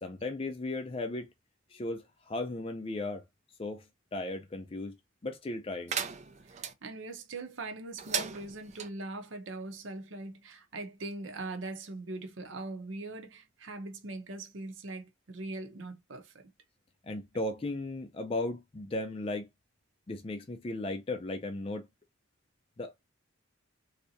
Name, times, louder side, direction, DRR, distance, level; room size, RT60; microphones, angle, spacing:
voice 1, 0.0-1.3 1.7-3.2 3.6-3.8 4.1-4.9 5.2-6.0 17.0-19.5 20.1-21.9 22.8-22.9, left 2 dB, 30° left, 0.4 m, -36 dB
sound 1, 5.9-6.7 8.0-8.9, right 7 dB, 35° right, 0.5 m, -36 dB
voice 2, 6.5-16.4, right 2 dB, 70° right, 0.8 m, -41 dB
3.4 x 2.7 x 2.7 m
head